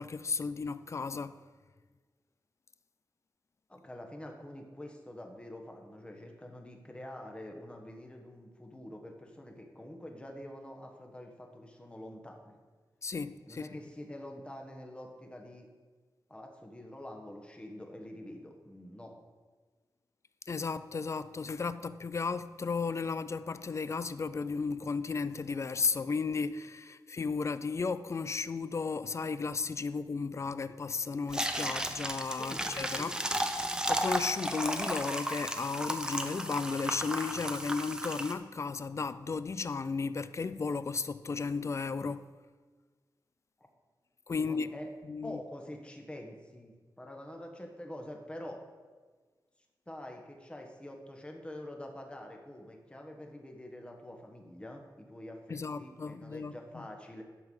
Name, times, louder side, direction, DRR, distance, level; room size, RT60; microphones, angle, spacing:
voice 1, 0.0-1.4 13.0-13.7 20.5-33.1 33.9-42.3 44.3-44.7 45.1-45.4 55.5-56.8, left 4 dB, 40° left, 0.4 m, -34 dB
voice 2, 3.7-12.6 13.4-15.7 16.3-19.1 32.4-32.6 33.0-33.2 44.4-44.9 45.2-48.6 49.9-57.2, left 1 dB, 15° left, 1.2 m, -46 dB
sound 1, 31.3-38.3, right 1 dB, 10° right, 0.7 m, -34 dB
11.0 x 6.9 x 5.4 m
wide cardioid pair, 165°, 8 cm